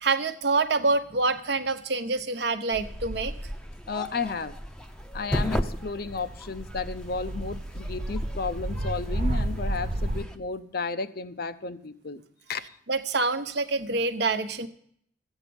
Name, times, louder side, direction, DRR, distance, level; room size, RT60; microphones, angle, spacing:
voice 1, 0.0-3.3 12.9-14.7, right 3 dB, 60° right, 8 dB, 0.9 m, -26 dB
sound 1, 2.7-10.4, equal, 5° left, 0.7 m, -36 dB
voice 2, 3.9-4.6 5.1-12.2 12.5-12.8, left 4 dB, 50° left, 12 dB, 0.6 m, -33 dB
sound 2, 5.9-10.2, right 1 dB, 35° right, 0.6 m, -31 dB
14.0 x 8.9 x 7.0 m, 0.65 s
head